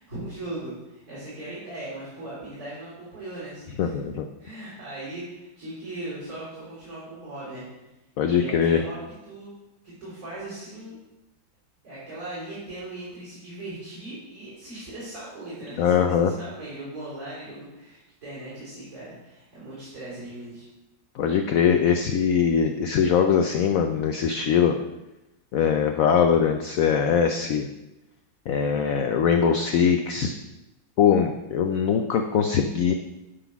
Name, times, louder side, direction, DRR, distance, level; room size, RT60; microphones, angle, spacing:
voice 1, 0.0-4.0 4.4-7.6 8.2-9.5 9.8-11.0 11.8-20.7, right 2 dB, 45° right, -10 dB, 4.3 m, -38 dB
voice 2, 3.8-4.2 8.2-8.8 15.8-16.3 21.1-24.8 25.5-27.7 28.5-30.3 31.0-32.9, left 7 dB, 80° left, 5 dB, 0.7 m, -22 dB
11.0 x 4.0 x 5.8 m, 0.97 s
omnidirectional pair, 2.0 m